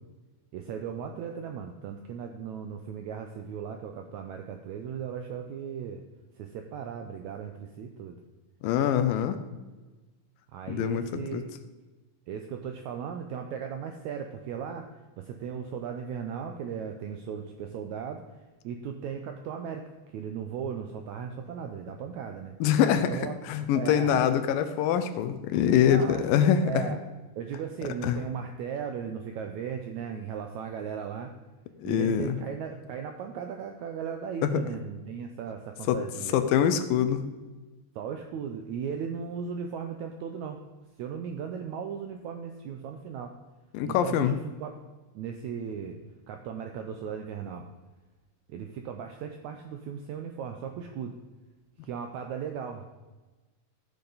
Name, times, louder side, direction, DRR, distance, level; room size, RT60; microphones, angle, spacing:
voice 1, 0.5-6.0 6.4-8.2 10.5-11.4 12.3-14.9 15.2-18.4 18.6-22.6 23.1-23.4 23.7-24.2 25.9-27.0 27.4-31.3 31.8-36.4 37.9-40.6 41.0-43.4 43.8-44.7 45.1-46.0 46.3-47.7 48.5-51.2 51.8-52.8, right 7 dB, 85° right, 5 dB, 1.6 m, -37 dB
voice 2, 8.6-9.4 10.7-11.0 11.3-11.4 22.6-23.2 23.5-26.8 28.0-28.2 31.8-32.4 34.4-34.6 35.9-36.0 36.3-37.2 43.7-44.3, left 9 dB, 85° left, 10 dB, 2.3 m, -24 dB
14.0 x 6.9 x 3.9 m, 1.2 s
omnidirectional pair, 4.1 m